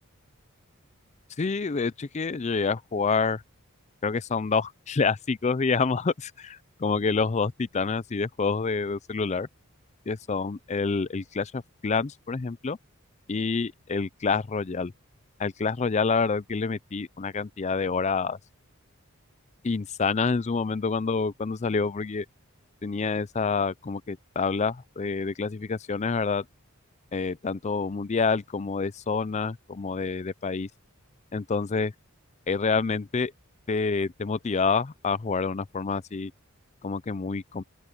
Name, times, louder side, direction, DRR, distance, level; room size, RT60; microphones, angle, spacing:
voice 1, 1.4-3.4 4.0-9.5 10.1-12.8 13.3-14.9 15.4-18.4 19.6-22.3 22.8-26.4 27.1-30.7 31.3-31.9 32.5-33.3 33.7-36.3 36.8-37.6, left 4 dB, 30° left, 0.4 m, -27 dB
open air
head